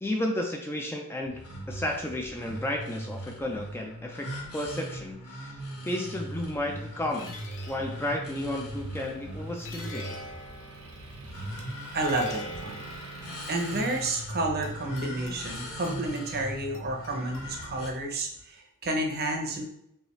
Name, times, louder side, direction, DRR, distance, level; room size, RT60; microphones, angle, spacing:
voice 1, 0.0-1.4 1.7-4.3 4.5-5.6 5.8-7.3 7.7-10.2, left 1 dB, 10° left, 1 dB, 0.4 m, -32 dB
sound 1, 1.2-17.9, equal, 85° left, 1.3 m, -40 dB
sound 2, 6.3-18.4, left 1 dB, 55° left, 0.8 m, -46 dB
Motor vehicle (road) / Engine, 7.7-14.1, right 5 dB, 90° right, 1.0 m, -48 dB
voice 2, 11.9-13.0 13.5-19.6, right 2 dB, 45° right, 2 dB, 0.7 m, -31 dB
5.4 x 2.4 x 3.1 m, 0.76 s
head